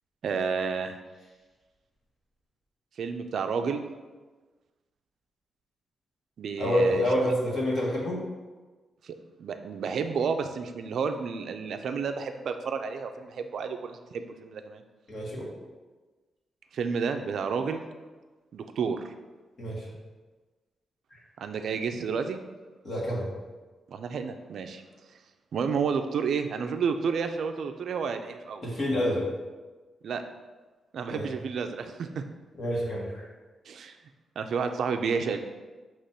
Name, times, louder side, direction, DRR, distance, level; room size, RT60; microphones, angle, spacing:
voice 1, 0.2-1.0 3.0-3.8 6.4-7.3 9.0-14.8 16.7-17.8 18.5-19.1 21.4-22.4 23.9-24.8 25.5-28.6 30.0-30.2 30.9-32.2 33.7-34.0 34.4-35.4, right 5 dB, 60° right, 7 dB, 0.5 m, -31 dB
voice 2, 6.6-8.2 15.1-15.5 19.6-19.9 21.1-21.2 22.8-23.3 28.6-29.2 31.1-31.3 32.6-33.3, equal, 40° left, -4 dB, 1.5 m, -28 dB
6.7 x 3.0 x 5.7 m, 1.3 s
wide cardioid pair, 180°, 0 cm